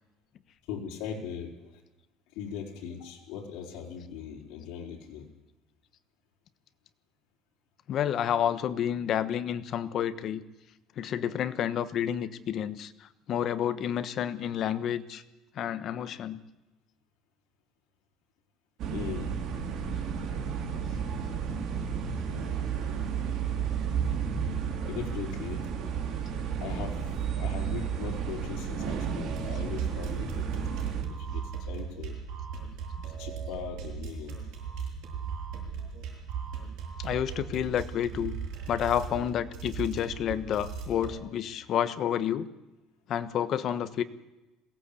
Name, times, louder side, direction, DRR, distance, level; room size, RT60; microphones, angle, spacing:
voice 1, 0.7-1.8 2.3-5.3 18.9-19.4 22.3-23.2 24.8-25.7 26.6-30.7 31.1-32.2 33.0-34.5, left 7 dB, 75° left, -2 dB, 4.4 m, -40 dB
voice 2, 7.9-10.4 11.0-15.2 15.5-16.4 37.0-38.4 38.7-42.5 43.1-44.0, left 9 dB, 45° left, 12 dB, 1.1 m, -30 dB
sound 1, 18.8-31.0, right 7 dB, 55° right, 3.4 m, -32 dB
sound 2, 29.1-41.2, right 6 dB, 70° right, 7.5 m, -38 dB
22.0 x 17.5 x 8.4 m, 1.0 s
cardioid pair, 155°, 0 cm